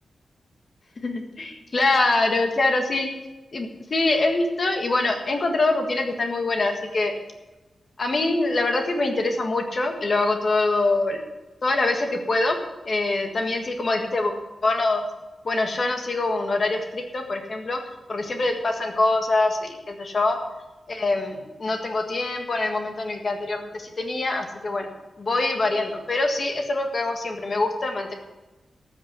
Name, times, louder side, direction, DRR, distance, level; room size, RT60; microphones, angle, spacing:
voice 1, 1.0-3.1 3.5-7.1 8.0-11.2 11.6-12.6 12.8-14.3 14.6-15.0 15.4-17.8 18.1-20.4 20.9-24.9 25.2-28.1, left 2 dB, 40° left, 4 dB, 1.7 m, -24 dB
13.5 x 6.4 x 7.0 m, 1.1 s
wide cardioid pair, 145°, 0 cm